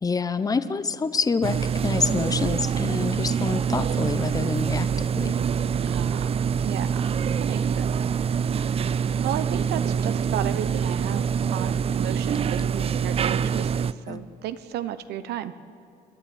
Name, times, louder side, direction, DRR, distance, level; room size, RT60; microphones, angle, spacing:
voice 1, 0.0-5.3 14.1-14.2, left 4 dB, 20° left, 13 dB, 0.9 m, -27 dB
sound 1, 1.4-13.9, right 7 dB, 35° right, 0.5 m, -25 dB
voice 2, 5.9-7.9 9.2-15.5, right 11 dB, 75° right, 12 dB, 0.9 m, -34 dB
27.5 x 11.0 x 8.9 m, 2.6 s
cardioid pair, 110°, 17 cm